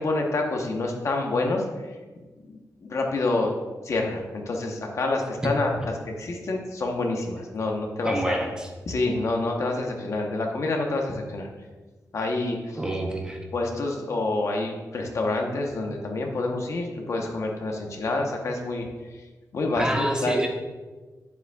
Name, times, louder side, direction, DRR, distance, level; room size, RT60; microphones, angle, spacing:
voice 1, 0.0-1.6 2.4-3.5 3.8-8.4 8.9-11.5 12.1-12.8 13.5-18.9 19.5-20.3, left 2 dB, 50° left, 2 dB, 0.9 m, -27 dB
voice 2, 8.0-8.7 12.8-13.4 19.7-20.5, right 1 dB, 10° right, 1 dB, 0.7 m, -27 dB
9.5 x 7.0 x 2.3 m, 1.3 s
wide cardioid pair, 175°, 6 cm